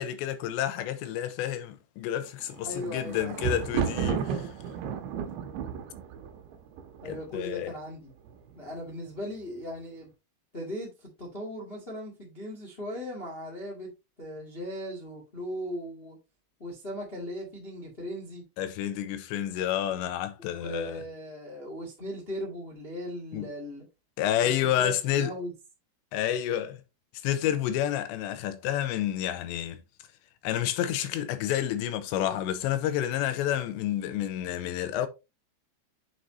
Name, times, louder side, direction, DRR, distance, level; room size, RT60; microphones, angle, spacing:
voice 1, 0.0-4.5 7.1-7.8 18.6-21.0 23.3-23.5 24.2-25.3 26.1-26.8 27.2-29.8 30.4-35.1, left 11 dB, 85° left, 2.9 m, -29 dB
Thunder, 2.4-7.5 8.3-8.8 9.1-9.2, right 8 dB, 80° right, 3.0 m, -33 dB
voice 2, 2.6-3.4 7.0-8.1 8.5-10.1 10.5-13.9 14.2-16.2 16.6-18.4 20.4-23.8 24.4-24.5 24.8-25.5, equal, 65° left, 0.5 m, -38 dB
7.4 x 6.0 x 2.7 m
omnidirectional pair, 5.2 m